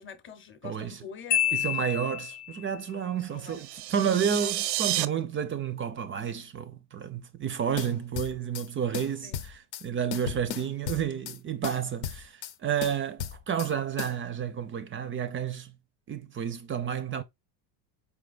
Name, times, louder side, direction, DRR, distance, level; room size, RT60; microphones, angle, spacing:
voice 1, 0.0-1.8 3.3-3.6 9.2-9.4, left 7 dB, 25° left, 0.7 m, -45 dB
voice 2, 0.6-1.0 1.5-15.7 16.1-17.2, right 8 dB, 25° right, 0.4 m, -31 dB
Marimba xylophone, 1.3-2.7, left 12 dB, 90° left, 0.6 m, -28 dB
sound 1, 3.5-5.1, right 15 dB, 85° right, 0.6 m, -30 dB
sound 2, 7.8-8.7 8.9-9.8 10.1-11.4 11.6-12.5 12.8-13.7 14.0-14.2, left 9 dB, 55° left, 0.7 m, -36 dB
4.6 x 3.4 x 2.3 m
supercardioid pair, 110°, 50 cm